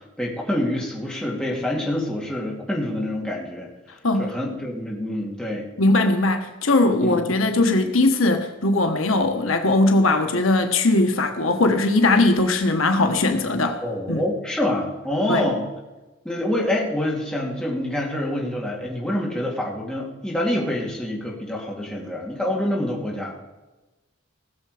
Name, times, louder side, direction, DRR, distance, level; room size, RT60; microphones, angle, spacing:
voice 1, 0.2-3.7 4.2-5.7 7.0-7.3 13.8-15.7 16.2-23.4, left 1 dB, 5° left, -3 dB, 2.7 m, -26 dB
voice 2, 5.8-13.8 14.1-14.2 15.3-15.5, left 2 dB, 80° left, 6 dB, 1.3 m, -20 dB
18.5 x 6.9 x 5.0 m, 1.1 s
head